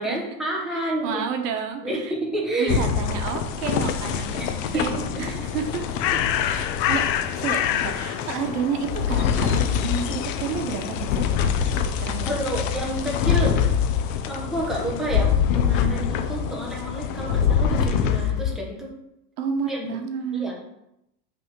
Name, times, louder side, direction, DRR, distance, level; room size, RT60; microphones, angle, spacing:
voice 1, 0.0-1.2 1.8-2.8 4.3-5.5 12.2-13.6 14.3-19.0 19.7-19.9 20.3-20.7, right 1 dB, ahead, -4 dB, 0.8 m, -29 dB
voice 2, 0.7-2.1 2.6-5.8 6.1-6.2 6.4-13.1 19.4-20.5, right 6 dB, 65° right, 6 dB, 1.1 m, -31 dB
sound 1, 2.7-18.6, left 7 dB, 50° left, 0.6 m, -25 dB
Bird, 5.5-11.5, left 11 dB, 90° left, 0.7 m, -28 dB
5.8 x 3.5 x 5.1 m, 0.85 s
supercardioid pair, 155°, 49 cm